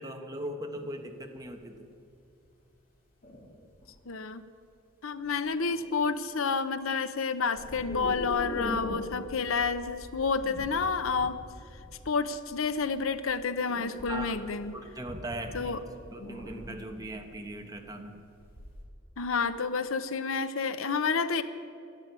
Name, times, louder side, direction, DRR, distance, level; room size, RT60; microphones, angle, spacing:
voice 1, 0.0-1.9 14.1-14.4 14.7-15.8 16.1-18.2, right 1 dB, 20° right, 4 dB, 1.2 m, -39 dB
sound 1, 0.7-0.8 1.4-1.6 2.2-2.3 3.2-3.9 5.2-5.3 5.7-6.1 7.5-18.8, equal, 45° left, 3.3 m, -42 dB
voice 2, 4.1-4.4 5.0-11.4 12.1-14.8 15.5-15.8 19.2-21.4, left 5 dB, 70° left, 12 dB, 0.7 m, -29 dB
12.0 x 11.5 x 9.4 m, 2.4 s
head